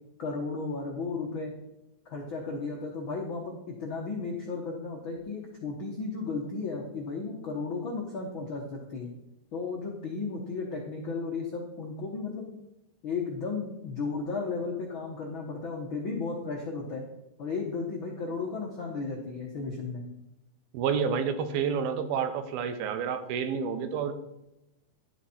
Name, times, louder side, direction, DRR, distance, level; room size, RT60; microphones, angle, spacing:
voice 1, 0.2-1.5 2.0-9.1 9.5-12.4 13.0-17.0 17.4-20.0, left 4 dB, 70° left, 0 dB, 1.1 m, -34 dB
voice 2, 20.7-24.1, right 7 dB, 90° right, 9 dB, 2.8 m, -29 dB
11.5 x 8.1 x 4.3 m, 0.90 s
omnidirectional pair, 4.2 m